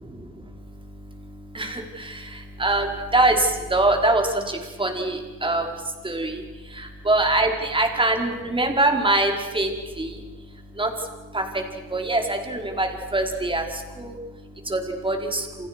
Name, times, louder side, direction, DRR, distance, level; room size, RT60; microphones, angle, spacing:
voice 1, 0.1-15.7, right 2 dB, 15° right, 3 dB, 5.2 m, -25 dB
29.5 x 28.0 x 6.3 m, 1.2 s
cardioid pair, 105°, 33 cm